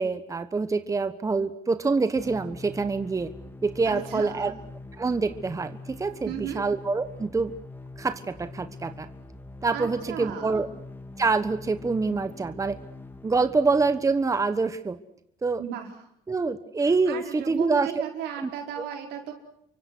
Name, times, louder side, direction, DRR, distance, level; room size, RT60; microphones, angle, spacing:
voice 1, 0.0-3.3 3.6-4.5 5.0-7.5 8.0-9.1 9.6-10.7 11.2-12.8 13.2-15.0 15.4-15.6 16.3-17.9 18.4-18.5 18.8-18.9, right 4 dB, 20° right, 10 dB, 1.3 m, -26 dB
sound 1, 2.2-14.1, left 2 dB, 10° left, 2.3 m, -44 dB
voice 2, 3.8-4.5 6.2-6.7 9.7-10.6 15.6-15.9 16.8-19.3, right 9 dB, 85° right, 3 dB, 5.1 m, -35 dB
29.5 x 24.5 x 6.3 m, 0.74 s
cardioid pair, 110°, 17 cm